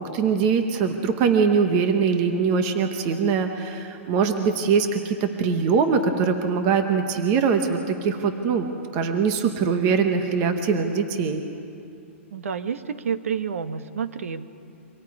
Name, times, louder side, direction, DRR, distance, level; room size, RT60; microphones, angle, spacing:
voice 1, 0.0-8.7 8.9-11.4, right 5 dB, 20° right, 6 dB, 1.0 m, -22 dB
voice 2, 12.3-14.6, right 7 dB, 90° right, 10 dB, 1.3 m, -29 dB
27.0 x 25.0 x 4.9 m, 2.6 s
hypercardioid pair, 180°, 7 cm